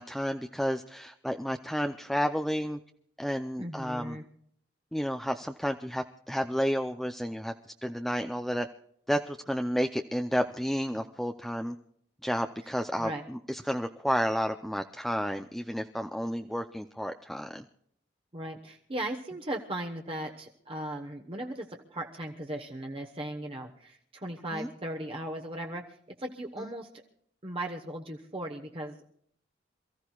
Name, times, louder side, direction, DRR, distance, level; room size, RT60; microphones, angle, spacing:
voice 1, 0.0-2.8 3.2-4.2 4.9-7.5 7.8-8.7 9.1-11.8 12.2-17.6 24.5-24.7 26.6-26.7, equal, ahead, 5 dB, 0.5 m, -31 dB
voice 2, 3.6-4.2 13.0-13.2 18.3-26.9 27.4-29.1, right 1 dB, 30° right, 1 dB, 1.1 m, -37 dB
27.5 x 15.0 x 2.4 m, 0.68 s
head